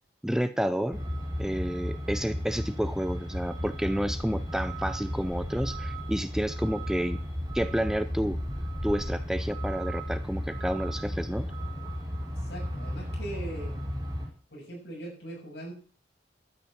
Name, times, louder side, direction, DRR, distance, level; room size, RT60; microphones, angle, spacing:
voice 1, 0.2-1.0 1.4-7.2 7.5-8.4 8.8-11.5, equal, 5° right, 11 dB, 0.5 m, -30 dB
Truck, 0.9-14.3, equal, 20° right, 4.0 m, -34 dB
voice 2, 12.3-13.7 14.5-15.7, right 1 dB, 65° left, -2 dB, 7.9 m, -40 dB
12.5 x 9.2 x 5.9 m, 0.41 s
head